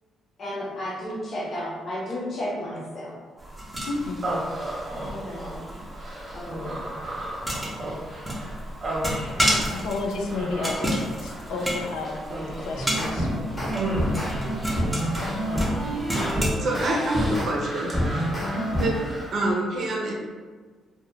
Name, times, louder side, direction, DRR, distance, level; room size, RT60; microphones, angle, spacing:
voice 1, 0.4-3.2 5.1-5.8 6.3-6.8 9.3-9.8 18.5-18.8, left 1 dB, 55° left, -4 dB, 0.8 m, -34 dB
sound 1, 3.4-16.5, equal, 5° right, 0.7 m, -32 dB
voice 2, 3.9-4.2 9.7-12.2 12.6-13.7, left 3 dB, 90° left, 1 dB, 0.4 m, -31 dB
Human voice, 4.2-19.4, right 1 dB, 35° right, 0.8 m, -35 dB
sound 2, 12.6-17.5 17.9-19.0, equal, 25° left, 0.9 m, -27 dB
voice 3, 16.6-17.9 18.8-18.9 19.3-20.1, right 1 dB, 65° right, -1 dB, 0.5 m, -26 dB
2.3 x 2.1 x 3.0 m, 1.5 s
cardioid pair, 90°, 0 cm